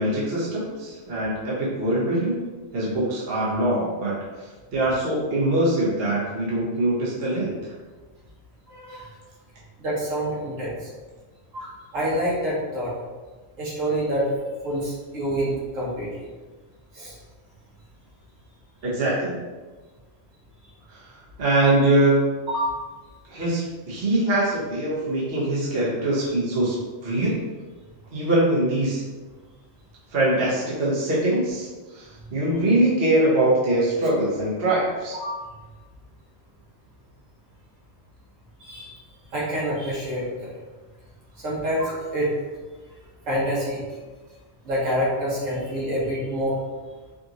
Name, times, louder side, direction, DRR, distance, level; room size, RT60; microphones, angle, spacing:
voice 1, 0.0-2.4 2.7-7.7 18.8-19.4 20.9-21.1 21.4-22.3 23.3-26.8 27.0-27.4 28.1-29.0 30.1-35.2, right 1 dB, 50° right, -7 dB, 1.2 m, -23 dB
voice 2, 8.7-9.1 9.8-10.9 11.5-12.9 13.6-14.3 14.6-16.1 16.9-17.1 22.5-22.7 35.1-35.4 38.6-39.0 39.3-40.5 41.4-42.3 43.3-43.8 44.6-46.6, equal, 70° right, -7 dB, 1.6 m, -27 dB
5.1 x 2.6 x 2.9 m, 1.3 s
omnidirectional pair, 1.4 m